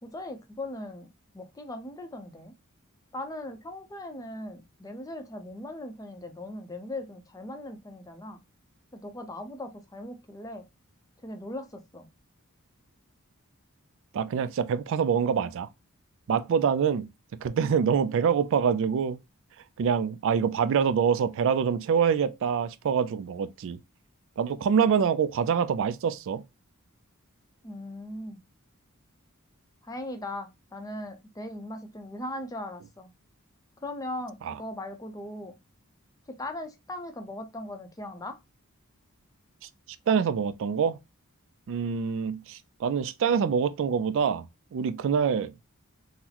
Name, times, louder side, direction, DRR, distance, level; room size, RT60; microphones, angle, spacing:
voice 1, 0.0-2.5 3.1-8.4 8.9-10.7 11.2-12.1 27.6-28.4 29.8-33.1 33.8-35.6 36.3-38.4, left 1 dB, 15° left, 0.5 m, -39 dB
voice 2, 14.1-15.7 16.3-17.1 17.4-19.2 19.8-23.8 24.4-26.4 34.4-34.5 40.1-41.0 41.7-44.5 44.7-45.7, right 7 dB, 60° right, 0.3 m, -25 dB
3.9 x 2.0 x 2.8 m
head